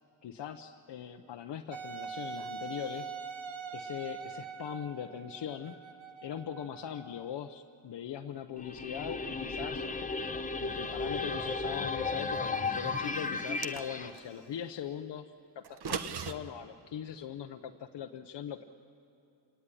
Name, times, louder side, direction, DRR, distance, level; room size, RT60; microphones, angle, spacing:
voice 1, 0.2-3.1 3.7-5.8 6.2-9.9 10.6-15.2 15.5-18.6, left 9 dB, 65° left, 5 dB, 0.9 m, -41 dB
Wind instrument woodwind instrument, 1.7-7.3, right 5 dB, 85° right, 1.9 m, -43 dB
sound 1, 8.6-14.1, left 3 dB, 15° left, 1.0 m, -34 dB
sound 2, 13.4-14.3 15.6-16.3, right 7 dB, 60° right, 1.2 m, -37 dB
28.0 x 19.0 x 9.9 m, 2.7 s
wide cardioid pair, 155°, 44 cm